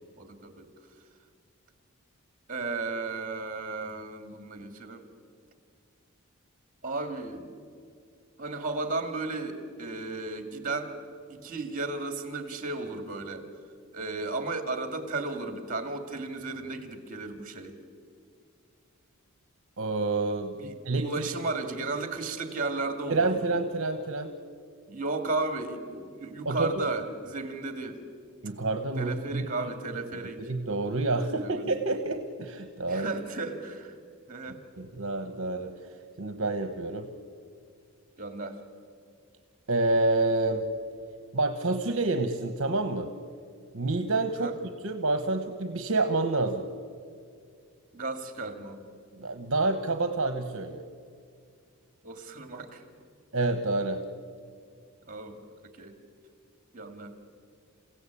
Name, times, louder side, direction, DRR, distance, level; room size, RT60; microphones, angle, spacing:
voice 1, 0.2-0.7 2.5-5.0 6.8-7.5 8.4-10.9 11.3-13.5 13.9-17.8 20.6-20.8 21.0-23.3 24.9-28.0 29.0-30.4 31.4-31.8 32.9-34.0 34.3-34.6 38.2-38.6 44.4-44.5 47.9-48.9 52.0-52.8 55.1-55.4 55.7-56.0 56.7-57.1, right 3 dB, 35° right, 7 dB, 2.5 m, -34 dB
voice 2, 19.8-21.0 23.1-24.3 26.4-26.7 28.4-29.5 30.5-33.1 34.8-35.7 36.2-37.1 39.7-40.7 41.3-43.1 43.7-44.5 44.8-46.7 49.1-50.8 53.3-54.0, right 2 dB, 60° right, 7 dB, 1.2 m, -28 dB
29.0 x 16.5 x 8.5 m, 2.3 s
head